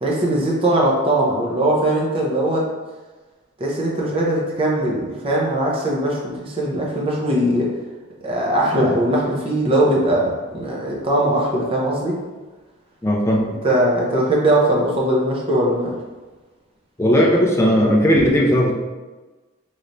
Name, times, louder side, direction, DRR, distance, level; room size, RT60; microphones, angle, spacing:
voice 1, 0.0-2.7 3.6-7.7 8.2-12.2 13.6-15.9, right 1 dB, 25° right, -3 dB, 0.6 m, -20 dB
voice 2, 13.0-13.5 17.0-18.7, equal, 15° left, -1 dB, 0.4 m, -16 dB
3.2 x 3.0 x 2.6 m, 1.2 s
head